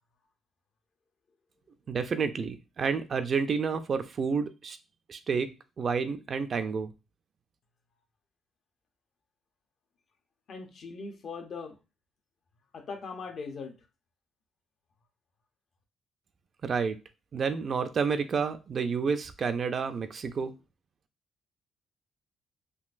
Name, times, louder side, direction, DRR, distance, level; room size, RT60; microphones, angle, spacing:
voice 1, 1.9-4.8 5.1-5.5 5.8-6.9 16.6-17.0 17.3-20.5, right 5 dB, 50° right, 9 dB, 0.4 m, -29 dB
voice 2, 10.5-11.7 12.7-13.7, left 4 dB, 60° left, 4 dB, 0.7 m, -40 dB
3.8 x 2.5 x 2.5 m, 0.29 s
cardioid pair, 90°, 0 cm